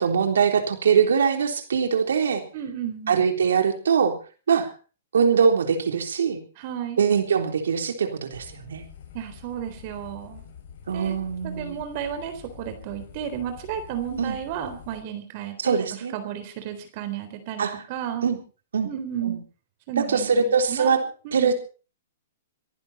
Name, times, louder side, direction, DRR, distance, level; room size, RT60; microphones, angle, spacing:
voice 1, 0.0-2.4 3.1-4.1 4.5-4.7 5.1-6.4 7.0-8.8 10.9-11.8 14.2-14.3 15.6-16.1 17.6-17.8 18.2-18.4 18.7-18.9 19.2-19.4 20.0-21.0 21.3-21.5, right 6 dB, 75° right, 6 dB, 3.4 m, -22 dB
voice 2, 2.5-3.2 6.6-7.0 9.1-10.4 10.9-11.2 11.4-18.3 18.8-19.4 19.9-20.9 21.2-21.5, right 9 dB, 45° right, 8 dB, 3.7 m, -33 dB
sound 1, 8.3-15.0, left 8 dB, 55° left, 6.8 m, -46 dB
26.0 x 11.5 x 4.2 m, 0.37 s
hypercardioid pair, 125°, 0 cm